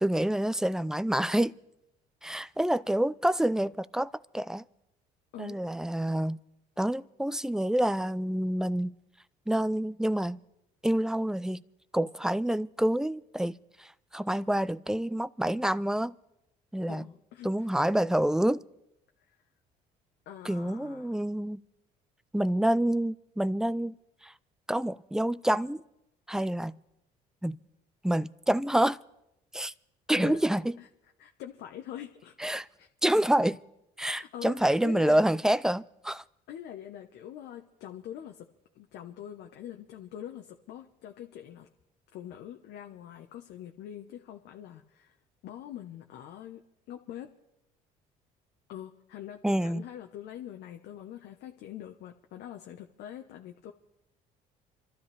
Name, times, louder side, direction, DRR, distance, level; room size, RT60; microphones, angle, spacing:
voice 1, 0.0-1.5 2.2-4.6 5.4-6.4 6.8-8.9 9.5-10.4 10.8-11.6 11.9-16.1 16.7-17.1 17.4-18.6 20.4-21.6 22.3-23.9 24.2-24.3 24.7-25.8 26.3-26.8 27.4-27.6 28.0-29.0 29.5-29.7 30.1-30.8 32.4-32.7 33.0-33.6 34.0-36.2 49.4-49.8, right 1 dB, 5° right, 0.5 m, -27 dB
voice 2, 16.9-17.7 20.3-21.1 30.2-30.4 30.8-30.9 31.2-32.9 34.0-35.2 36.5-38.5 38.7-41.7 42.1-45.2 45.4-47.3 48.7-53.7, left 10 dB, 70° left, 1.0 m, -44 dB
27.0 x 13.0 x 3.4 m
hypercardioid pair, 65°, 19 cm